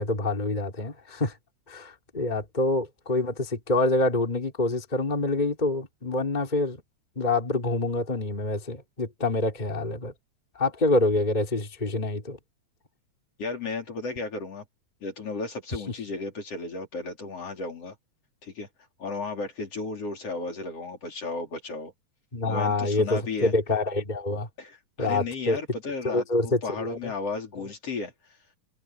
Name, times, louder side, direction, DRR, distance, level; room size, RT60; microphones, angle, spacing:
voice 1, 0.0-1.3 1.7-6.8 7.2-10.1 10.5-12.4 22.3-24.5 25.0-25.6 26.0-27.1 27.5-27.6, left 2 dB, 15° left, 3.2 m, -26 dB
voice 2, 13.4-14.6 15.0-17.9 18.4-18.7 19.0-21.9 22.5-23.5 24.6-26.2 26.6-28.1, left 3 dB, 55° left, 4.7 m, -34 dB
omnidirectional pair, 3.4 m